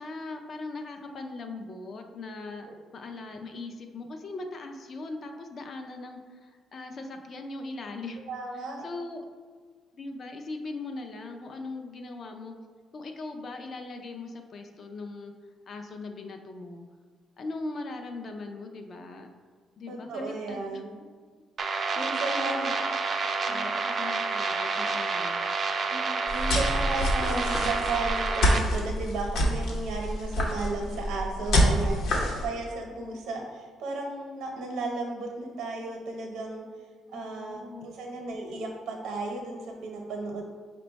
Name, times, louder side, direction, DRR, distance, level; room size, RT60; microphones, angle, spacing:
voice 1, 0.0-2.7 2.9-8.2 8.8-9.3 9.9-12.5 12.9-15.3 15.7-16.8 17.4-19.3 19.8-20.8 22.2-25.6 37.1-38.0, left 3 dB, 40° left, 5 dB, 0.4 m, -40 dB
voice 2, 8.3-8.9 19.9-20.9 21.9-22.7 23.4-23.7 25.9-36.7 37.1-40.4, right 2 dB, 85° right, 1 dB, 0.8 m, -34 dB
sound 1, 21.6-28.6, right 4 dB, 35° right, 0.3 m, -29 dB
sound 2, 26.3-32.5, equal, 70° left, 0.8 m, -27 dB
5.1 x 2.2 x 3.9 m, 1.5 s
cardioid pair, 150°, 0 cm